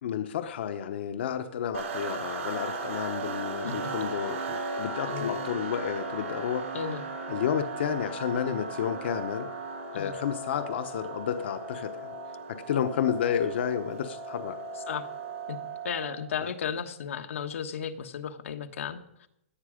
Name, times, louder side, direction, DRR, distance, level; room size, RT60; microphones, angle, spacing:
voice 1, 0.0-6.7 7.3-9.5 9.9-12.2 12.5-14.6 16.4-16.5, left 8 dB, 55° left, 8 dB, 1.0 m, -31 dB
sound 1, 1.7-16.3, right 3 dB, 85° right, 4.7 m, -36 dB
voice 2, 3.6-4.1 5.1-5.4 6.7-7.0 9.9-10.1 14.9-15.1 15.5-15.6 15.8-19.3, left 7 dB, 80° left, 6 dB, 1.3 m, -35 dB
17.5 x 11.0 x 5.1 m, 0.79 s
hypercardioid pair, 175°, 7 cm